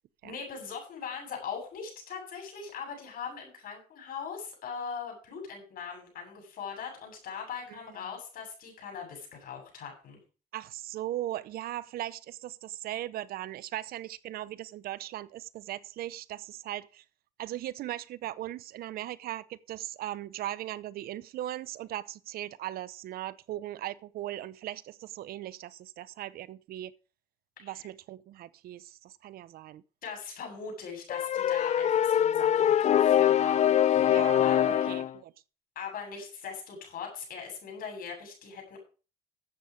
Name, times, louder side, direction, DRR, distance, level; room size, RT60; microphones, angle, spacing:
voice 1, 0.2-10.2 27.6-27.9 30.0-35.0 35.7-38.8, left 6 dB, 60° left, 7.9 m, -41 dB
voice 2, 10.5-17.0 17.4-26.9 27.6-29.8 34.1-34.4 34.9-35.3, right 13 dB, 60° right, 0.7 m, -38 dB
sound 1, 31.1-35.1, left 10 dB, 40° left, 0.5 m, -23 dB
12.5 x 8.1 x 5.1 m
supercardioid pair, 90°, 17 cm